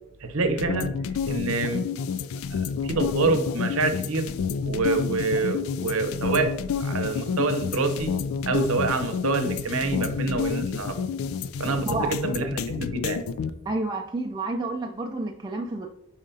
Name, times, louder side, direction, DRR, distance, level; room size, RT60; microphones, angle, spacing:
voice 1, 0.2-0.9 1.3-1.9 2.5-4.3 4.6-8.1 8.4-11.0 11.6-13.2, right 3 dB, 85° right, 7 dB, 0.8 m, -26 dB
sound 1, 0.6-13.5, left 6 dB, 80° left, 0.3 m, -29 dB
voice 2, 13.7-15.9, right 2 dB, 20° right, 1 dB, 0.3 m, -29 dB
8.9 x 4.9 x 2.7 m, 0.81 s
head